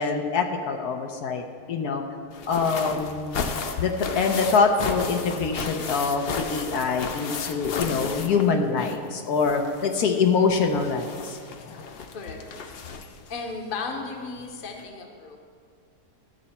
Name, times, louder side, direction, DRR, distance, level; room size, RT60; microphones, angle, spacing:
voice 1, 0.0-1.4 1.7-2.0 2.5-3.4 3.8-11.4, left 5 dB, 75° left, 4 dB, 1.3 m, -24 dB
sound 1, 2.3-9.1 9.3-13.3 14.4-14.5 14.8-14.9, left 5 dB, 60° left, 0.6 m, -34 dB
voice 2, 7.7-8.1 10.4-10.6 11.5-11.7 12.1-12.7 13.3-15.4, left 4 dB, 40° left, 3 dB, 1.0 m, -36 dB
12.5 x 6.8 x 4.3 m, 2.1 s
omnidirectional pair, 1.7 m